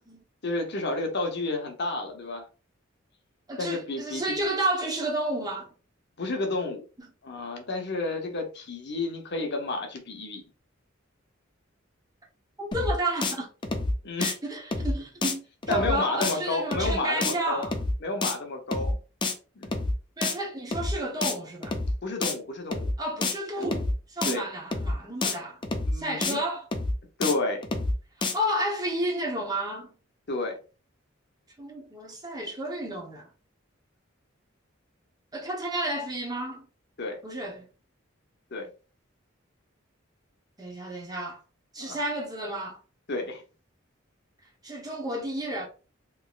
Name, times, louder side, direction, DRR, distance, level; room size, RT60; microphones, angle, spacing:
voice 1, 0.4-2.4 3.6-4.2 6.2-6.8 7.2-10.4 14.0-14.3 15.7-17.6 18.0-19.0 19.6-19.7 22.0-22.9 24.3-24.5 25.9-26.4 27.2-27.6 30.3-30.6 37.0-37.2 38.5-38.7 41.8-42.0 43.1-43.4, left 2 dB, 55° left, 0.8 m, -31 dB
voice 2, 3.5-5.7 7.0-7.1 12.6-13.5 14.2-17.8 20.2-21.8 23.0-25.6 25.9-26.6 28.2-29.9 31.6-33.3 35.3-36.6 37.2-37.6 40.6-41.4 41.7-42.8 44.6-45.7, right 1 dB, 20° right, 0.9 m, -31 dB
sound 1, 12.7-12.9 13.2-13.3 13.6-13.9 14.2-14.3 14.7-14.9 15.2-15.3 15.6-15.9 16.2-16.3 16.7-16.9 17.2-17.3 17.6-17.9 18.2-18.3 18.7-18.9 19.2-19.3 19.6-19.9 20.2-20.3 20.7-20.9 21.2-21.3 21.6-21.9 22.2-22.3 22.7-22.9 23.2-23.3 23.6-23.9 24.2-24.3 24.7-24.9 25.2-25.3 25.6-25.9 26.2-26.3 26.7-26.9 27.2-27.3 27.6-27.9 28.2-28.3, left 2 dB, 25° left, 0.5 m, -28 dB
3.4 x 3.0 x 2.4 m
head